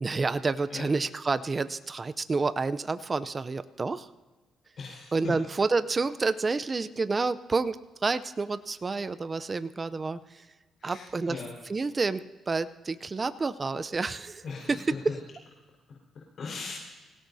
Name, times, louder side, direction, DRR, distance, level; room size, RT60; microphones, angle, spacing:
voice 1, 0.0-4.1 5.1-10.2 10.8-11.4 11.7-15.1, right 4 dB, 30° right, 12 dB, 0.6 m, -29 dB
voice 2, 4.8-5.3 10.8-11.5 14.4-15.1 16.4-16.7, left 4 dB, 55° left, -3 dB, 4.6 m, -38 dB
25.5 x 17.0 x 2.8 m, 1.2 s
cardioid pair, 90°, 0 cm